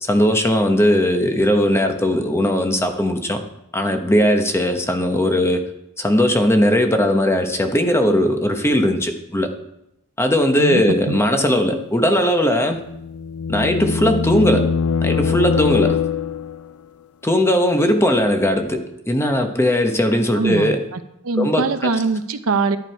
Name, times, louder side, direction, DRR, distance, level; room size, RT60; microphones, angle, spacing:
voice 1, 0.0-3.4 3.7-5.7 6.0-9.5 10.2-12.8 13.5-14.7 15.0-16.0 17.2-20.8 21.4-21.6, equal, 10° left, 5 dB, 1.1 m, -18 dB
voice 2, 10.6-11.2 20.3-22.8, right 3 dB, 70° right, 10 dB, 0.7 m, -22 dB
sound 1, 12.7-16.7, left 6 dB, 80° left, 0.4 m, -22 dB
11.0 x 11.0 x 4.6 m, 0.83 s
head